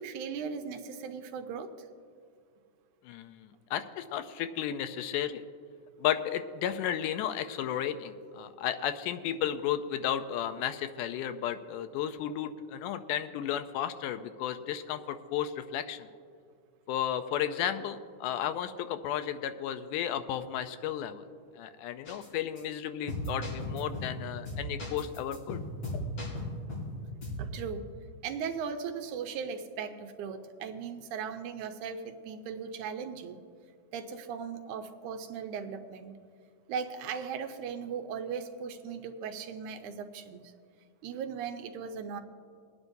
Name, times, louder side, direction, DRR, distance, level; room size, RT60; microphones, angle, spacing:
voice 1, 0.0-1.9 27.4-27.9 28.2-33.4 33.9-36.1 36.7-40.5 41.0-42.2, right 6 dB, 80° right, 7 dB, 2.1 m, -38 dB
voice 2, 3.0-5.4 6.0-16.1 16.9-21.2 21.6-25.6 25.9-26.0, left 10 dB, 85° left, 10 dB, 2.1 m, -33 dB
sound 1, 22.1-22.3 22.6-22.7 23.1-24.2 24.5-26.9 27.2-27.5, left 1 dB, 55° left, 4.6 m, -36 dB
23.0 x 9.6 x 2.7 m, 2.2 s
omnidirectional pair, 3.6 m